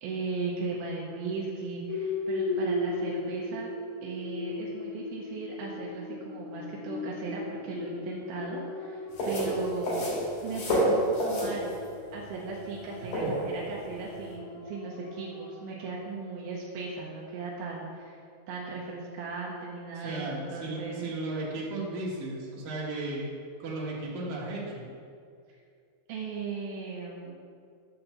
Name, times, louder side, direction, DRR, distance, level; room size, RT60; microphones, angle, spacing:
voice 1, 0.0-3.7 4.0-10.0 10.4-11.7 12.1-18.2 18.5-21.1 26.1-27.4, right 4 dB, 75° right, -4 dB, 2.2 m, -37 dB
sound 1, 1.9-16.1, left 2 dB, 80° left, 4.5 m, -38 dB
sound 2, 9.1-14.3, equal, 50° left, 3.8 m, -29 dB
voice 2, 20.0-23.2 23.6-24.9, right 2 dB, 60° right, -5 dB, 2.8 m, -35 dB
9.9 x 4.4 x 6.6 m, 2.3 s
omnidirectional pair, 5.4 m